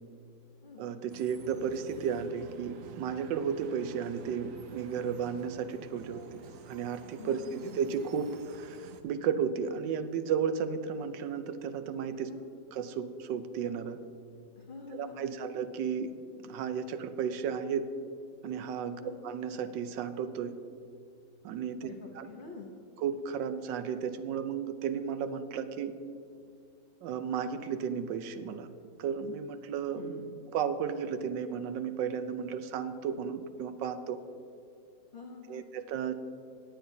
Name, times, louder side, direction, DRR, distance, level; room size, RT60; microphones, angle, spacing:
voice 1, 0.8-12.3 12.7-14.0 14.9-17.9 18.4-20.6 21.4-21.9 22.2-22.3 23.0-25.9 27.0-28.7 29.0-30.0 30.5-34.2 35.5-36.1, right 7 dB, 85° right, 10 dB, 1.3 m, -34 dB
sound 1, 1.1-9.0, right 5 dB, 65° right, 0.8 m, -51 dB
voice 2, 7.2-7.8 12.3-12.5 14.6-15.5 19.0-19.2 21.8-22.7 30.0-30.3 35.1-35.6, left 4 dB, 50° left, 0 dB, 0.6 m, -46 dB
20.0 x 7.9 x 2.7 m, 2.5 s
omnidirectional pair, 1.9 m